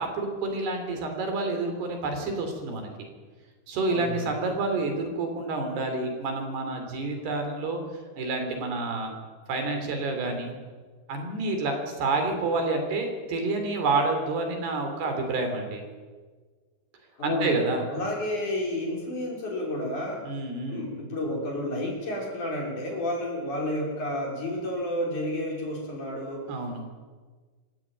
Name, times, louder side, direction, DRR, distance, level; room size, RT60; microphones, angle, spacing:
voice 1, 0.0-3.1 3.7-7.8 8.2-9.1 9.5-10.5 11.1-15.8 17.2-17.8 20.3-20.9 26.5-26.8, right 3 dB, 65° right, 5 dB, 5.4 m, -29 dB
voice 2, 3.9-4.3 17.2-17.6 17.9-20.3 20.7-26.5, left 1 dB, 45° left, -1 dB, 6.6 m, -31 dB
26.5 x 15.0 x 9.2 m, 1.4 s
omnidirectional pair, 5.0 m